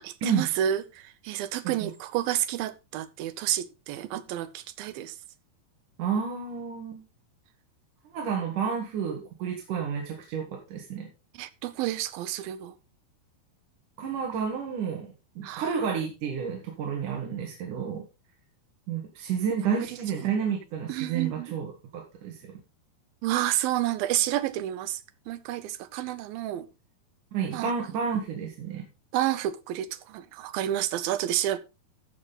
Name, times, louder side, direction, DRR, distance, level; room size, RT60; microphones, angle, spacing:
voice 1, 0.0-5.1 11.3-12.7 15.4-15.7 20.9-21.5 23.2-25.0 25.3-26.7 27.5-27.7 29.1-31.6, right 12 dB, 75° right, 2.3 m, -30 dB
voice 2, 6.0-7.0 8.1-11.1 14.0-15.1 15.4-18.0 18.9-22.4 27.3-28.9, right 6 dB, 55° right, 3.1 m, -30 dB
15.0 x 6.2 x 4.0 m
omnidirectional pair, 4.6 m